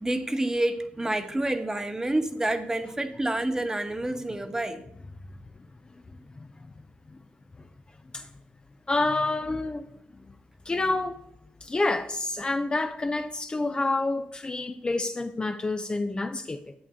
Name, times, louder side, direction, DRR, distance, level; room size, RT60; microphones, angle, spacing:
voice 1, 0.0-4.8, right 1 dB, 15° right, 1.2 m, -28 dB
voice 2, 5.9-6.7 7.1-7.2 7.6-7.7 8.1-8.3 8.9-9.9 10.3-10.4 10.7-11.2 11.6-16.7, left 2 dB, 25° left, 0.6 m, -29 dB
11.5 x 8.0 x 3.7 m
cardioid pair, 70°, 4 cm